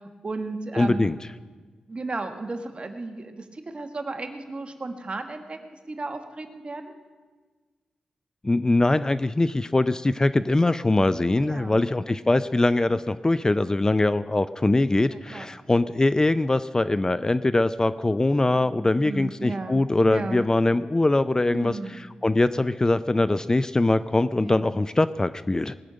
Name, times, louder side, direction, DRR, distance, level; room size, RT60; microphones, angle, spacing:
voice 1, 0.2-1.1 1.9-5.6 5.9-6.9 11.4-11.8 15.1-15.5 18.5-20.4 21.5-22.0 24.4-24.7, right 3 dB, 40° right, 6 dB, 1.6 m, -34 dB
voice 2, 0.8-1.2 8.4-25.7, left 2 dB, 25° left, 14 dB, 0.4 m, -22 dB
19.5 x 6.6 x 8.8 m, 1.4 s
cardioid pair, 65°, 3 cm